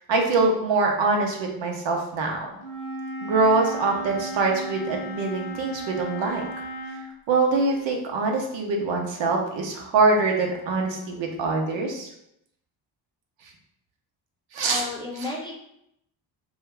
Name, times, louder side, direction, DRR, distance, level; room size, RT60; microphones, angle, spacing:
voice 1, 0.1-2.5 3.2-6.4 7.3-12.1 14.5-14.9 15.2-15.3, right 3 dB, 70° right, 1 dB, 0.7 m, -24 dB
Wind instrument woodwind instrument, 2.6-7.0, right 1 dB, 80° left, 0.9 m, -35 dB
voice 2, 14.6-15.5, left 2 dB, 10° left, -3 dB, 0.7 m, -33 dB
2.7 x 2.3 x 3.2 m, 0.78 s
cardioid pair, 65°, 46 cm